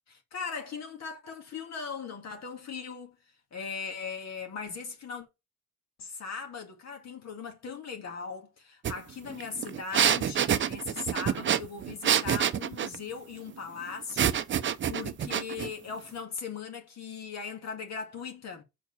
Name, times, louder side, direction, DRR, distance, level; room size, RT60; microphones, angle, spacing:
voice 1, 0.1-3.2 3.5-5.3 6.0-18.6, left 5 dB, 60° left, 2.0 m, -39 dB
sound 1, 8.8-8.9 9.3-13.0 14.2-15.7, right 9 dB, 40° right, 0.6 m, -27 dB
5.2 x 4.5 x 5.3 m
cardioid pair, 90°, 30 cm